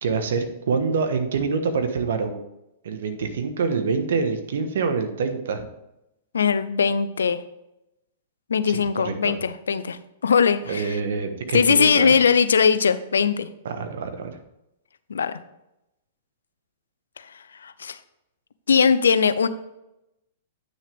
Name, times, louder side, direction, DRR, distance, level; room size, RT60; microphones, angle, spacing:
voice 1, 0.0-2.4 2.8-5.7 8.7-9.3 10.7-12.2 13.6-14.4, right 5 dB, 70° right, 8 dB, 1.3 m, -26 dB
voice 2, 6.3-7.4 8.5-11.0 11.5-13.5 15.1-15.4 17.2-17.3 17.6-18.0 18.7-19.5, left 6 dB, 85° left, 14 dB, 0.6 m, -20 dB
9.3 x 6.4 x 3.5 m, 0.88 s
hypercardioid pair, 120°, 0 cm